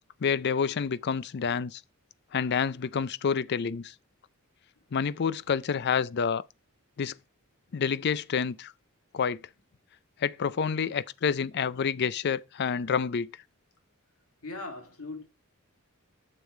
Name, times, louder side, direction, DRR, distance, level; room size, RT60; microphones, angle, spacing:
voice 1, 0.2-1.8 2.3-3.9 4.9-6.4 7.0-7.1 7.7-8.7 9.1-9.4 10.2-13.3, left 6 dB, 50° left, 0.4 m, -28 dB
voice 2, 14.4-15.2, left 2 dB, 90° left, 2.5 m, -39 dB
8.0 x 6.8 x 3.2 m
head